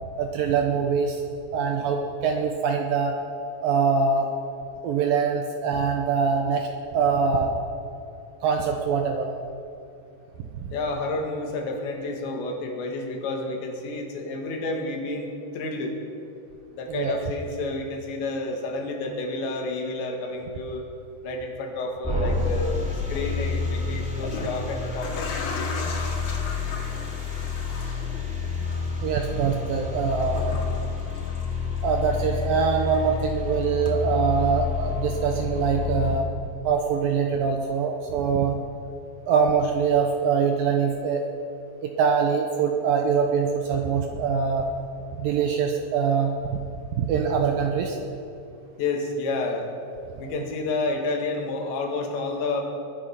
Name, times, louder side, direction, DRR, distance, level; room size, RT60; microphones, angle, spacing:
voice 1, 0.2-1.2 1.5-3.2 3.6-4.3 4.8-6.7 6.9-7.5 8.4-9.3 16.9-17.2 29.0-30.5 31.8-36.3 36.6-38.6 39.3-41.2 41.8-44.7 45.2-46.3 46.9-48.0 50.2-50.3, right 6 dB, 75° right, 2 dB, 2.2 m, -23 dB
voice 2, 10.7-16.0 16.7-20.8 21.2-25.9 48.8-49.7 50.2-52.6, left 2 dB, 80° left, 2 dB, 4.1 m, -30 dB
sound 1, 22.0-36.2, left 4 dB, 5° right, 1.1 m, -29 dB
sound 2, 23.0-23.2 24.0-32.1 32.4-33.4 33.9-34.0, left 4 dB, 60° left, 3.5 m, -38 dB
21.0 x 10.0 x 5.8 m, 2.7 s
omnidirectional pair, 5.0 m